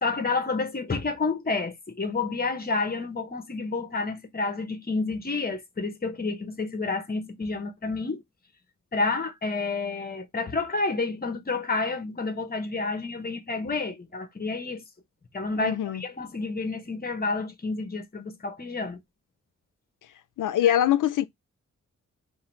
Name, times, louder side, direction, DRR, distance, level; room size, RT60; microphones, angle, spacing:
voice 1, 0.0-8.2 8.9-14.8 15.3-19.0 20.6-20.8, left 3 dB, 30° left, 1.0 m, -29 dB
voice 2, 15.6-16.0 20.4-21.3, left 11 dB, 85° left, 0.5 m, -23 dB
3.7 x 2.6 x 4.3 m
wide cardioid pair, 115°, 30 cm